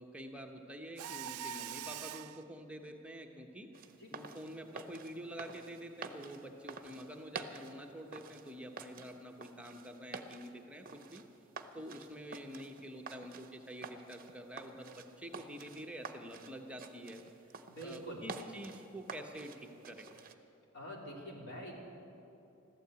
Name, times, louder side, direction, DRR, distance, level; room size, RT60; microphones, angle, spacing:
voice 1, 0.0-3.7 4.1-11.2 11.7-17.2 17.8-20.1, equal, 5° right, 2 dB, 0.9 m, -47 dB
Mechanisms, 1.0-2.4, right 9 dB, 75° right, 0.4 m, -43 dB
sound 1, 3.7-20.3, right 4 dB, 40° right, 0.7 m, -49 dB
voice 2, 17.7-18.2 20.7-21.7, right 1 dB, 50° left, -2 dB, 3.2 m, -45 dB
14.5 x 12.5 x 8.2 m, 2.8 s
head